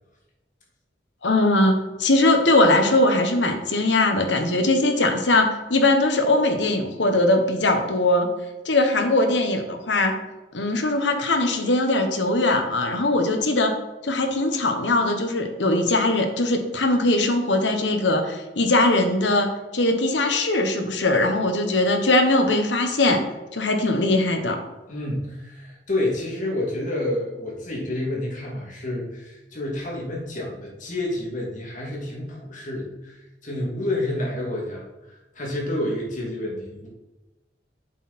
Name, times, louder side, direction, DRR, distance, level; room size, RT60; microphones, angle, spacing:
voice 1, 1.2-1.7 2.0-5.4 5.7-8.3 8.6-10.1 10.5-13.7 14.0-19.5 19.7-23.2 23.5-24.6, left 2 dB, 90° left, 5 dB, 1.3 m, -20 dB
voice 2, 24.9-36.9, left 1 dB, 45° left, -2 dB, 2.6 m, -29 dB
8.1 x 6.6 x 4.3 m, 1.1 s
head